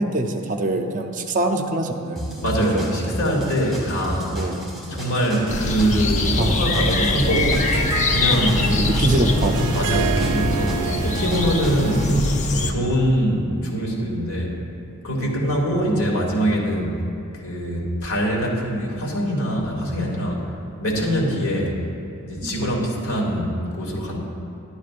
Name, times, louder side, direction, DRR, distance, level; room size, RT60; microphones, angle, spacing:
voice 1, 0.0-2.2 2.6-3.3 4.3-4.6 6.4-6.6 7.2-7.4 8.8-9.8 11.9-12.3 21.5-21.7 22.4-22.6, right 1 dB, 35° right, 5 dB, 0.6 m, -24 dB
sound 1, 2.2-12.3, equal, ahead, 1.9 m, -33 dB
voice 2, 2.4-4.3 4.9-7.6 8.1-8.7 9.7-12.1 12.5-14.6 15.0-17.0 17.3-20.5 20.8-21.7 22.2-24.2, equal, 80° left, -3 dB, 2.3 m, -23 dB
sound 2, 5.5-12.7, left 2 dB, 35° left, 0.6 m, -23 dB
Harp, 7.1-12.4, right 8 dB, 90° right, 0.3 m, -30 dB
11.5 x 11.0 x 2.5 m, 2.8 s
head